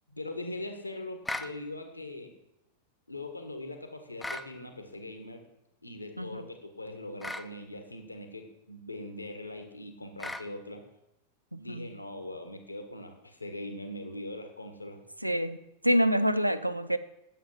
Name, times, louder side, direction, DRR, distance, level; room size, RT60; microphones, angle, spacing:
voice 1, 0.1-2.3 3.1-5.5 5.8-10.8 11.6-15.0, left 1 dB, 85° left, 7 dB, 1.3 m, -41 dB
sound 1, 1.2-1.5 4.2-4.5 7.2-7.5 10.2-10.5, left 2 dB, 10° left, 0.5 m, -36 dB
voice 2, 6.2-6.5 11.5-11.9 15.2-15.6 15.8-17.0, equal, 90° right, 13 dB, 0.5 m, -27 dB
9.1 x 7.4 x 6.0 m, 0.87 s
figure-of-eight pair, 90°, 0 cm